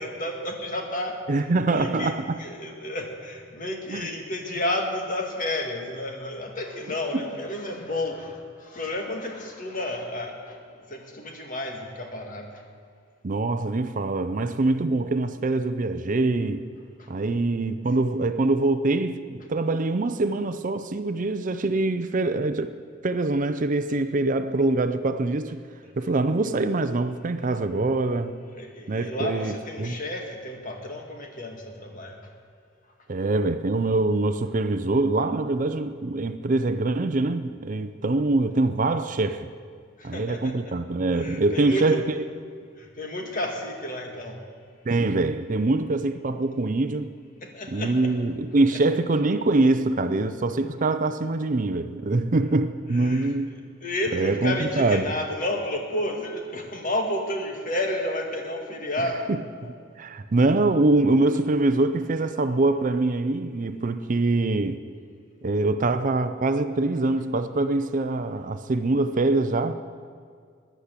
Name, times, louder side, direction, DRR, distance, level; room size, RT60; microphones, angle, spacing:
voice 1, 0.0-12.6 17.0-17.1 23.9-24.0 28.5-32.2 40.0-40.8 41.1-42.1 42.8-44.4 47.4-48.1 48.7-48.8 52.9-53.3 53.8-59.3, left 1 dB, 40° left, 1.9 m, -31 dB
voice 2, 1.3-2.4 3.9-4.1 7.1-7.3 13.2-16.6 17.1-22.8 23.0-25.6 26.0-28.4 28.9-30.0 33.1-39.5 40.0-42.0 44.8-47.1 47.7-53.5 54.1-55.1 59.3-64.8 65.4-69.7, right 2 dB, 40° right, 0.5 m, -24 dB
14.0 x 10.0 x 8.3 m
head